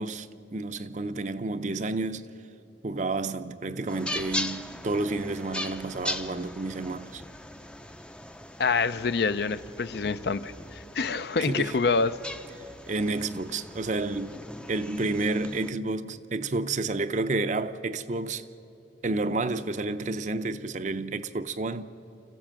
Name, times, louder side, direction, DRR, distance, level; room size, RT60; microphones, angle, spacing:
voice 1, 0.0-2.3 2.8-7.2 11.4-11.8 12.9-14.4 14.7-18.4 19.0-21.8, right 2 dB, 40° right, 0.6 m, -30 dB
sound 1, 3.9-15.7, left 1 dB, 5° left, 0.5 m, -39 dB
voice 2, 8.6-12.2, left 4 dB, 60° left, 0.5 m, -26 dB
26.0 x 15.0 x 7.5 m
head